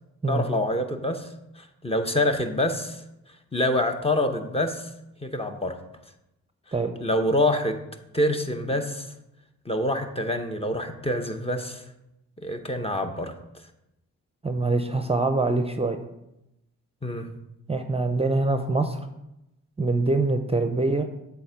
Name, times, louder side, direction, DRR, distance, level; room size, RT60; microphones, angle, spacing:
voice 1, 0.3-1.3 1.6-3.0 3.5-4.9 5.2-5.8 7.0-7.8 8.1-9.1 9.7-11.8 12.4-13.3 17.0-17.3, left 1 dB, 15° left, 6 dB, 0.8 m, -26 dB
voice 2, 14.4-16.0 17.7-19.0 19.8-21.0, right 3 dB, 20° right, 7 dB, 0.6 m, -24 dB
7.7 x 3.6 x 5.0 m, 0.88 s
supercardioid pair, 50°, 34 cm